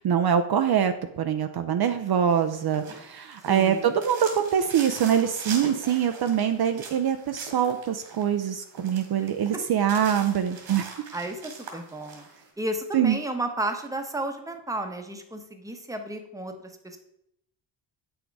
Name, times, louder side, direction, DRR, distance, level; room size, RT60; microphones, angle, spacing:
voice 1, 0.0-10.9 12.9-13.2, right 8 dB, 55° right, 8 dB, 0.6 m, -24 dB
sound 1, 2.3-12.4, right 4 dB, 85° right, 2.4 m, -42 dB
voice 2, 3.5-3.8 11.1-12.3 12.6-16.5 16.8-17.0, right 1 dB, 5° right, 5 dB, 1.0 m, -32 dB
8.3 x 6.3 x 4.6 m, 0.77 s
cardioid pair, 125°, 47 cm